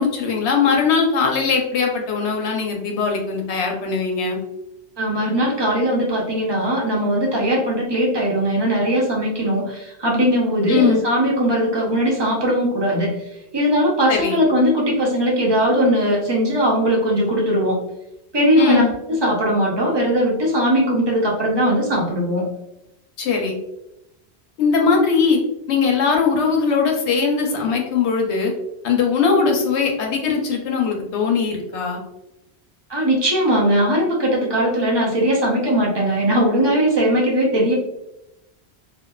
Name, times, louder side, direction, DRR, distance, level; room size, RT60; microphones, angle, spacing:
voice 1, 0.0-4.4 10.7-11.0 14.1-14.4 18.6-18.9 23.2-23.6 24.6-25.4 25.7-28.5 28.8-32.0, left 5 dB, 90° left, 2 dB, 0.9 m, -20 dB
voice 2, 5.0-13.1 13.5-17.8 18.3-18.8 19.1-22.4 32.9-37.7, equal, 30° right, -3 dB, 0.5 m, -19 dB
2.6 x 2.1 x 2.2 m, 0.88 s
omnidirectional pair, 1.1 m